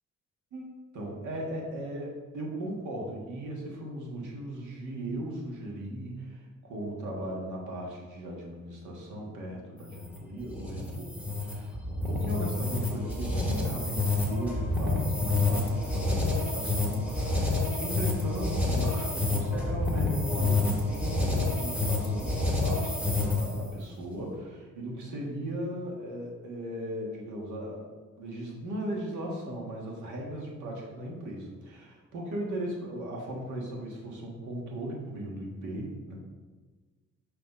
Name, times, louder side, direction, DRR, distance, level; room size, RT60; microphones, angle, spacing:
voice 1, 0.5-27.9 28.2-36.1, right 1 dB, 90° right, -2 dB, 1.6 m, -37 dB
sound 1, 9.8-23.7, left 3 dB, 5° right, 1.0 m, -28 dB
6.0 x 3.3 x 5.4 m, 1.4 s
cardioid pair, 160°, 29 cm